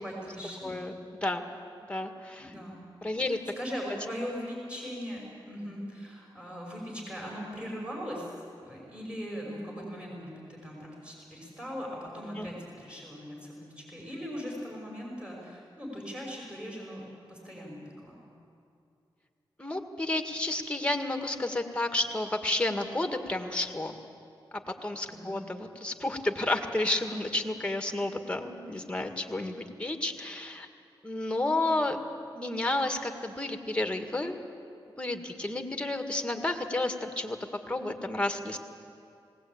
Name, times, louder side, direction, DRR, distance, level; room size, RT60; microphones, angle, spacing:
voice 1, 0.0-0.8 2.4-2.8 3.2-8.3 8.6-17.0 17.3-18.2 25.1-25.4, equal, 10° right, -3 dB, 6.0 m, -40 dB
voice 2, 0.6-1.5 1.9-2.5 3.0-3.4 12.4-12.5 19.6-23.9 24.8-30.7 31.0-32.0 32.3-34.4 35.0-37.4 37.7-38.6, left 2 dB, 10° left, 5 dB, 1.9 m, -31 dB
19.5 x 18.5 x 8.7 m, 2.5 s
cardioid pair, 80°, 9 cm